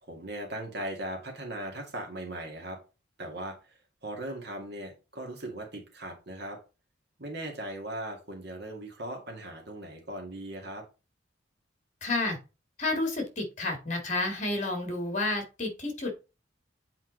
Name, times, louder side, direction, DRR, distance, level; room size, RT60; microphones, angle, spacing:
voice 1, 0.1-2.8 3.2-6.6 7.2-10.8, right 1 dB, 55° right, 2 dB, 2.1 m, -38 dB
voice 2, 12.0-12.4 12.8-16.1, left 2 dB, 40° left, 4 dB, 2.1 m, -30 dB
8.0 x 4.3 x 3.9 m, 0.30 s
head